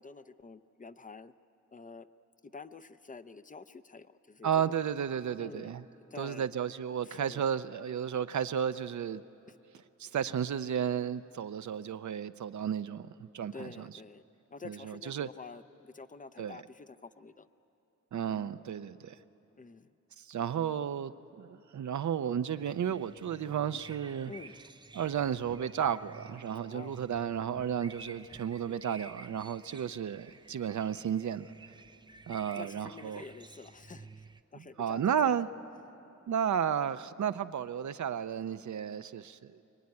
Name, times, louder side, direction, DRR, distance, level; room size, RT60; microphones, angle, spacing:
voice 1, 0.0-1.3 1.7-2.1 2.4-4.7 5.4-5.7 6.1-6.5 7.0-7.5 9.5-9.6 13.5-14.2 14.5-17.5 19.6-19.9 24.3-24.6 26.6-27.0 28.7-28.8 32.6-34.2 34.5-35.4, left 4 dB, 25° left, 0.6 m, -48 dB
voice 2, 4.4-5.8 6.2-9.2 10.0-13.9 14.6-15.3 16.4-16.6 18.1-19.2 20.2-21.1 21.4-24.3 24.9-31.5 32.3-33.2 34.8-35.5 36.3-39.6, right 8 dB, 70° right, 0.6 m, -33 dB
sound 1, 22.6-34.4, right 3 dB, 15° right, 0.5 m, -52 dB
24.5 x 23.0 x 9.6 m
wide cardioid pair, 130°, 30 cm